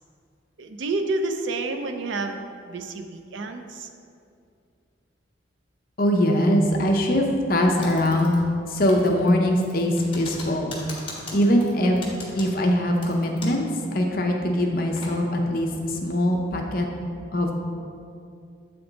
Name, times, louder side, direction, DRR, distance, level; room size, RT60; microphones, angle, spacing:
voice 1, 0.6-2.4 2.7-3.9, right 3 dB, 80° right, 6 dB, 0.5 m, -29 dB
voice 2, 6.0-8.3 8.7-10.7 11.3-12.0 12.4-16.9 17.3-17.5, equal, 50° left, 1 dB, 0.7 m, -22 dB
Typing, 7.8-8.6 8.9-13.7 14.0-14.1 14.6-15.1, left 2 dB, 30° left, 1.1 m, -40 dB
7.9 x 3.4 x 3.9 m, 2.4 s
head